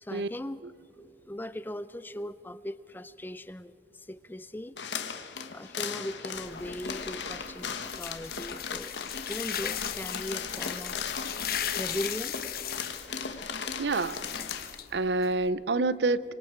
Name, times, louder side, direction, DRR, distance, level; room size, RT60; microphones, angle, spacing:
voice 1, 0.0-0.6 0.9-4.8 5.5-8.9 9.3-11.0 11.8-12.4, left 1 dB, 10° left, 15 dB, 0.5 m, -39 dB
sound 1, 4.8-14.8, left 6 dB, 90° left, 1.4 m, -38 dB
sound 2, 6.3-15.5, left 9 dB, 55° left, 1.1 m, -37 dB
voice 2, 13.8-14.2 14.9-16.3, right 3 dB, 75° right, 17 dB, 0.6 m, -27 dB
26.5 x 25.0 x 4.6 m, 2.8 s
head